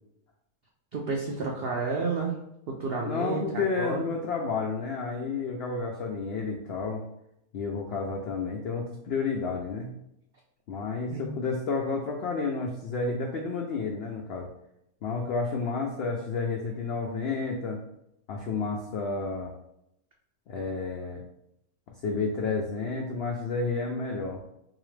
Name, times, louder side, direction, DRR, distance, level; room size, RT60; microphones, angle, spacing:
voice 1, 0.9-2.3 2.7-4.1 11.1-11.3, right 4 dB, 85° right, 0 dB, 0.5 m, -31 dB
voice 2, 3.0-7.0 7.5-9.9 10.7-14.5 15.0-17.8 18.3-19.5 20.5-21.2 22.0-24.4, left 4 dB, 90° left, 1 dB, 0.5 m, -31 dB
3.8 x 2.9 x 3.2 m, 0.79 s
omnidirectional pair, 1.6 m